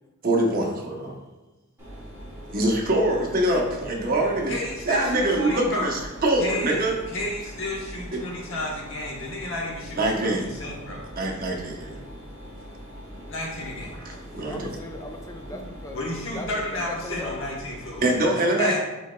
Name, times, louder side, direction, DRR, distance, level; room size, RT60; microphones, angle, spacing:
voice 1, 0.2-1.1 2.5-4.5 4.9-7.0 8.1-8.2 10.0-10.5 11.2-12.0 14.0-14.8 18.0-18.8, right 1 dB, 45° right, -1 dB, 0.8 m, -24 dB
Mechanisms, 1.8-18.0, equal, 15° right, 1.2 m, -42 dB
voice 2, 4.5-5.8 6.4-11.0 13.3-13.9 15.9-18.1 18.3-18.8, left 1 dB, 65° left, -2 dB, 1.0 m, -32 dB
voice 3, 14.4-16.0 16.3-17.3 18.3-18.8, left 1 dB, 15° left, 3 dB, 0.4 m, -37 dB
6.1 x 3.9 x 2.2 m, 1.1 s
head